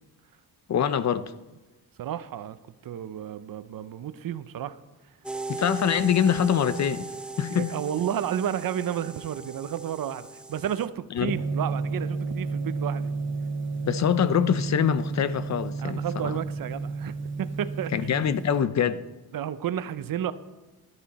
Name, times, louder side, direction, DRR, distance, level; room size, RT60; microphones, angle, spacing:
voice 1, 0.7-1.3 5.5-7.1 7.4-7.7 11.1-11.4 13.8-16.4 17.9-19.0, left 8 dB, 45° left, 0.6 m, -24 dB
voice 2, 2.0-4.8 7.5-13.1 15.8-17.9 19.3-20.3, right 10 dB, 60° right, 0.7 m, -32 dB
sound 1, 5.2-10.9, right 3 dB, 5° right, 0.4 m, -38 dB
Gong, 11.2-18.6, right 4 dB, 30° right, 2.0 m, -32 dB
13.0 x 11.0 x 4.2 m
wide cardioid pair, 130°, 38 cm